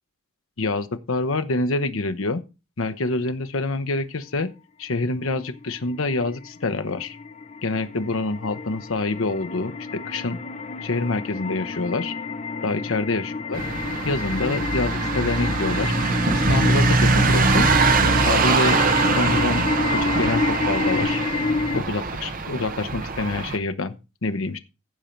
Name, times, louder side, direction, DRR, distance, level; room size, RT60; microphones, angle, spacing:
voice 1, 0.6-2.4 2.8-4.5 4.8-7.2 7.6-10.4 10.8-12.1 12.6-13.6 14.0-15.9 16.3-17.7 18.2-18.8 19.2-21.3 21.7-23.9 24.2-24.6, left 3 dB, 70° left, 0.8 m, -26 dB
sound 1, 5.6-21.8, left 4 dB, 30° left, 0.6 m, -29 dB
sound 2, 13.5-23.6, right 3 dB, 40° right, 0.8 m, -22 dB
15.5 x 5.2 x 4.4 m
head